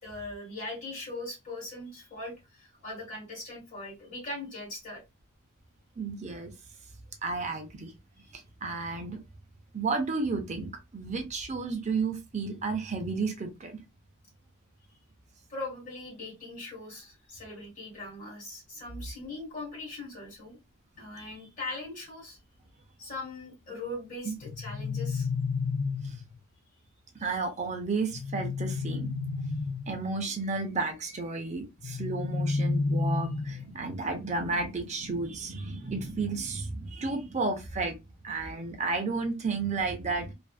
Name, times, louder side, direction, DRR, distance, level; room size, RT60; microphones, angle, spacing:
voice 1, 0.0-5.0 8.2-8.3 15.5-20.6 21.0-22.4 23.0-25.3, left 2 dB, 40° left, 1.5 m, -40 dB
voice 2, 6.0-6.5 7.2-7.9 8.3-9.2 9.7-13.8 24.3-24.4 26.0-26.2 27.1-29.1 29.9-38.0 38.2-40.3, right 3 dB, 35° right, 0.5 m, -32 dB
sound 1, 24.4-26.4 28.1-30.1 31.8-33.8, left 3 dB, 60° left, 0.4 m, -31 dB
2.5 x 2.3 x 2.3 m
head